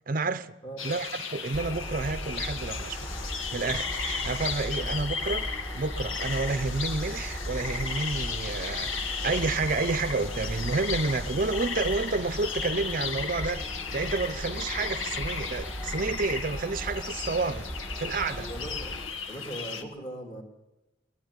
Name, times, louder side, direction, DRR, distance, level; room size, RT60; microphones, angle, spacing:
voice 1, 0.1-0.5 0.8-3.1 3.5-17.7 18.0-18.5, right 3 dB, 45° right, 0.6 m, -30 dB
voice 2, 0.6-0.9 4.8-4.9 18.3-19.0 19.3-20.4, right 1 dB, 30° left, 3.0 m, -39 dB
sound 1, 0.8-19.8, left 5 dB, 85° left, 1.9 m, -35 dB
sound 2, 1.5-19.1, equal, 10° left, 1.4 m, -38 dB
20.0 x 15.5 x 9.8 m
head